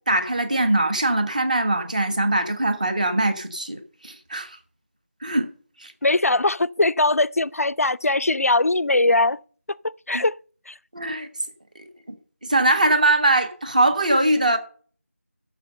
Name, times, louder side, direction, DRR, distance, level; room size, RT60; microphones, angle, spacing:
voice 1, 0.1-4.6 5.2-5.5 5.8-5.9 10.9-11.3 11.7-11.8 12.4-14.6, right 2 dB, 30° right, 1.3 m, -21 dB
voice 2, 6.0-9.4 10.1-10.4 10.7-10.8, left 2 dB, 75° left, 0.5 m, -20 dB
12.0 x 7.2 x 5.4 m
figure-of-eight pair, 175°, 8 cm